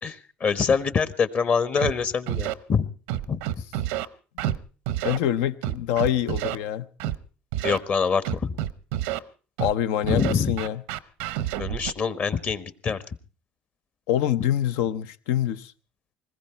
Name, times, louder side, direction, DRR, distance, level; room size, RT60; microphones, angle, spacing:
voice 1, 0.0-2.9 3.3-3.4 7.6-8.5 10.0-10.6 11.6-13.0, left 6 dB, 45° left, 1.2 m, -25 dB
Scratching (performance technique), 1.8-1.9 2.3-2.5 3.1-4.1 4.4-4.6 4.9-5.2 5.6-6.6 7.0-7.2 7.5-7.8 8.3-9.2 9.6-9.7 10.1-11.9, right 13 dB, 90° right, 0.7 m, -28 dB
voice 2, 5.0-6.9 9.6-10.8 14.1-15.7, left 11 dB, 80° left, 0.7 m, -25 dB
20.0 x 15.0 x 4.5 m
supercardioid pair, 90°, 4 cm